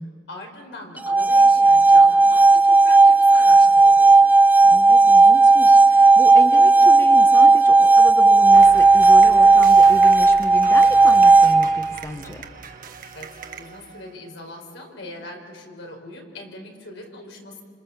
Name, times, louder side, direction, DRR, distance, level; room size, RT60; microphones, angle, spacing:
voice 1, 0.3-4.3 13.1-17.6, left 1 dB, 80° left, 2 dB, 4.5 m, -40 dB
sound 1, 1.0-11.9, right 3 dB, 10° right, 0.6 m, -13 dB
voice 2, 4.6-12.4, equal, 15° left, 5 dB, 1.2 m, -32 dB
sound 2, 8.5-14.5, right 5 dB, 50° right, 1.3 m, -40 dB
27.0 x 26.5 x 7.2 m, 2.2 s
head